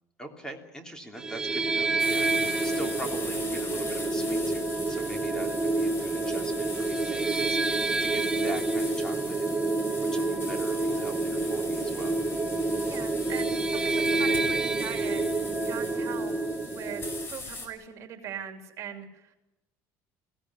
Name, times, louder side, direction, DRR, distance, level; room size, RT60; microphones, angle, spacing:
voice 1, 0.2-12.2, right 1 dB, 10° left, 4 dB, 3.0 m, -42 dB
sound 1, 1.2-17.3, right 3 dB, 10° right, 1.1 m, -28 dB
sound 2, 2.0-17.7, left 3 dB, 35° left, 5.6 m, -40 dB
voice 2, 12.9-16.3 16.7-19.3, right 9 dB, 45° right, 5 dB, 3.1 m, -41 dB
21.5 x 17.0 x 9.7 m, 0.96 s
cardioid pair, 145°, 7 cm